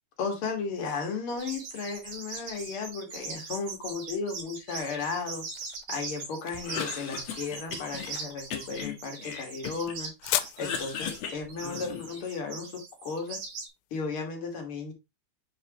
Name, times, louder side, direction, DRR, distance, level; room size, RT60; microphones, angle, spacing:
voice 1, 0.2-5.5 5.9-10.1 10.6-13.4 13.9-14.9, left 4 dB, 45° left, 2 dB, 2.0 m, -34 dB
sound 1, 1.4-13.7, right 4 dB, 80° right, 4.5 m, -41 dB
sound 2, 4.7-13.8, left 14 dB, 85° left, 2.3 m, -39 dB
Cough, 6.5-8.1 8.5-10.0 10.3-12.2, left 7 dB, 65° left, 1.6 m, -37 dB
7.8 x 4.8 x 2.9 m, 0.22 s
omnidirectional pair, 4.2 m